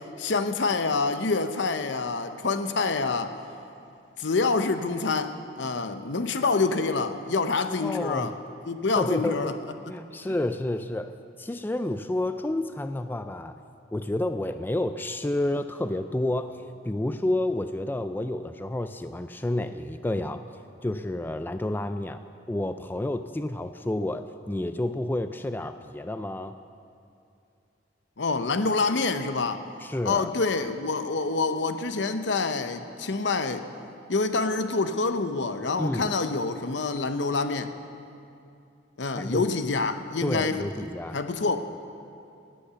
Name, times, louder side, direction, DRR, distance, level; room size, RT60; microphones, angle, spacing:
voice 1, 0.0-3.4 4.2-8.3 8.7-9.6 10.2-10.3 28.2-29.6 30.0-33.6 34.1-37.7 39.0-41.6, left 3 dB, 70° left, 9 dB, 0.8 m, -27 dB
voice 2, 7.8-8.3 9.0-9.6 9.9-13.6 13.9-20.4 20.8-22.2 22.5-26.6 29.8-30.3 35.8-36.1 39.1-39.5 40.2-41.2, left 1 dB, 10° left, 9 dB, 0.3 m, -30 dB
18.0 x 8.6 x 6.9 m, 2.6 s
head